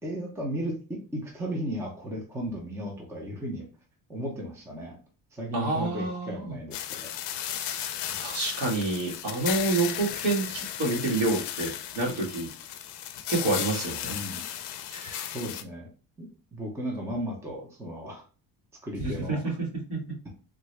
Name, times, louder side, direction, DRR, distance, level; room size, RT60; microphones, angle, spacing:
voice 1, 0.0-3.6 4.1-5.0 5.3-7.2 14.0-14.4 15.3-15.9 16.2-18.2 18.8-19.5, equal, 5° right, 0 dB, 0.5 m, -35 dB
voice 2, 5.5-6.5 7.4-11.7 12.0-12.5 13.3-14.2 14.9-15.3 19.0-20.2, right 2 dB, 80° right, -3 dB, 1.7 m, -29 dB
sound 1, 6.7-15.6, left 11 dB, 80° left, 0.5 m, -35 dB
3.6 x 2.2 x 3.1 m, 0.35 s
cardioid pair, 175°, 41 cm